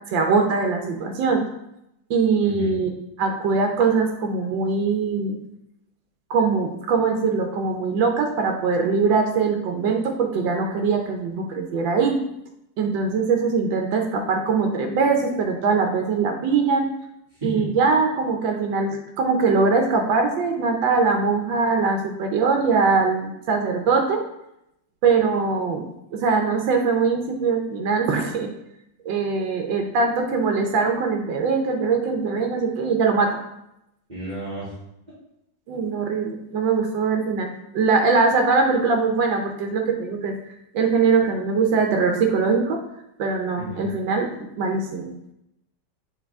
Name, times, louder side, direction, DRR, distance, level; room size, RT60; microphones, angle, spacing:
voice 1, 0.1-1.4 2.1-2.9 3.2-5.4 6.3-12.2 12.8-16.9 17.4-24.2 25.0-28.5 29.0-33.4 35.7-40.4 40.7-42.9 43.2-44.3 44.6-45.1, right 4 dB, 85° right, 3 dB, 1.5 m, -22 dB
voice 2, 2.4-2.8 17.4-17.6 34.1-34.7 43.6-44.1, right 1 dB, 25° right, -12 dB, 2.5 m, -34 dB
7.2 x 3.8 x 3.5 m, 0.83 s
omnidirectional pair, 2.0 m